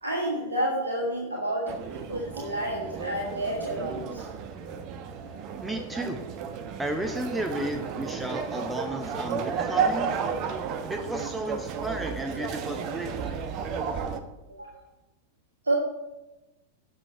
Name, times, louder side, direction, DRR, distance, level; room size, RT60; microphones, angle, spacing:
voice 1, 0.0-4.3 14.6-14.8 15.6-15.8, right 1 dB, 75° right, -2 dB, 1.7 m, -30 dB
sound 1, 1.7-14.2, right 6 dB, 40° right, 0.8 m, -33 dB
voice 2, 5.6-6.2 6.8-10.2 10.9-13.4, right 1 dB, 10° right, 6 dB, 0.8 m, -33 dB
16.5 x 6.2 x 3.3 m, 1.0 s
figure-of-eight pair, 90°, 0 cm